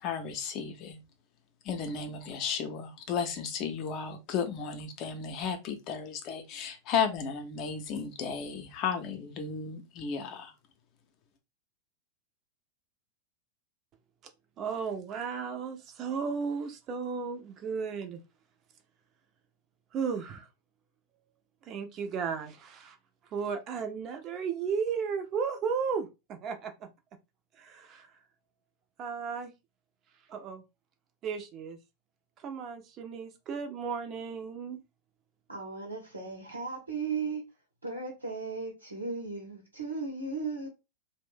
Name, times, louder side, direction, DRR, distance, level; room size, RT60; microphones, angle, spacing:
voice 1, 0.0-1.0 1.6-10.5, left 6 dB, 40° left, 0.6 m, -34 dB
voice 2, 14.6-18.2 19.9-20.5 21.6-23.0 23.3-26.9 27.5-28.2 29.0-29.5 30.3-30.6 31.2-31.8 32.4-34.8, right 6 dB, 35° right, 0.5 m, -34 dB
voice 3, 35.5-37.4 37.8-40.7, right 4 dB, 80° right, 0.9 m, -36 dB
2.5 x 2.1 x 3.6 m
figure-of-eight pair, 90°, 0 cm